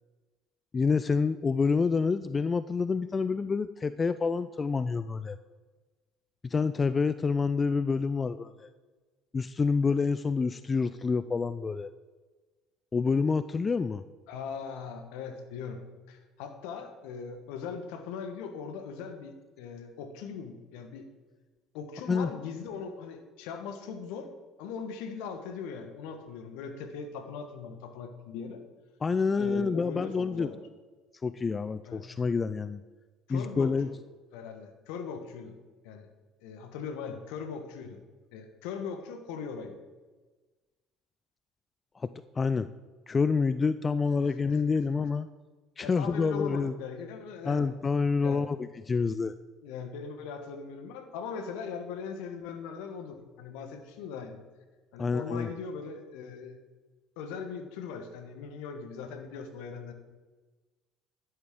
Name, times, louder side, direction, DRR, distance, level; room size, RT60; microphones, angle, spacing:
voice 1, 0.7-5.4 6.5-8.7 9.3-11.9 12.9-14.0 22.1-22.3 29.0-30.5 31.2-32.8 33.3-33.9 42.0-42.1 42.4-42.7 43.1-45.3 45.8-46.7 47.5-48.6 48.9-49.3 55.0-55.5, left 4 dB, 30° left, 14 dB, 0.4 m, -27 dB
voice 2, 14.3-21.1 21.7-24.3 24.6-28.6 29.4-30.6 31.8-32.1 33.3-33.9 34.3-35.6 35.8-36.1 36.4-38.0 38.3-39.8 44.2-44.9 45.8-47.7 48.2-48.5 49.6-54.4 54.9-56.6 57.2-59.9, left 6 dB, 70° left, 7 dB, 1.3 m, -40 dB
11.5 x 11.0 x 3.7 m, 1.3 s
hypercardioid pair, 60°, 0 cm